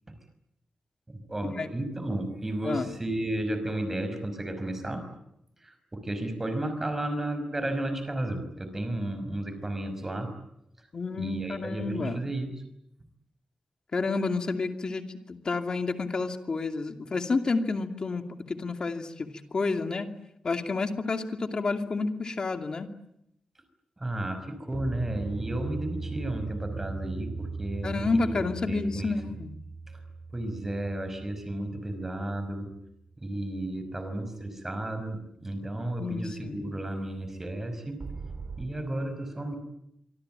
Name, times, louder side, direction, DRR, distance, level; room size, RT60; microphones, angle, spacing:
voice 1, 1.1-5.0 5.6-10.3 11.2-12.5 24.0-29.2 29.9-30.0 30.3-32.7 33.2-38.0 38.6-39.6, right 1 dB, 15° right, 9 dB, 5.4 m, -33 dB
voice 2, 2.6-2.9 10.9-12.2 13.9-20.1 20.4-22.9 27.8-29.5 36.0-36.7, left 3 dB, 40° left, 7 dB, 2.6 m, -30 dB
sound 1, 24.7-33.1 38.0-38.7, right 4 dB, 45° right, 2.5 m, -39 dB
25.5 x 25.0 x 9.0 m, 0.79 s
wide cardioid pair, 180°, 2 cm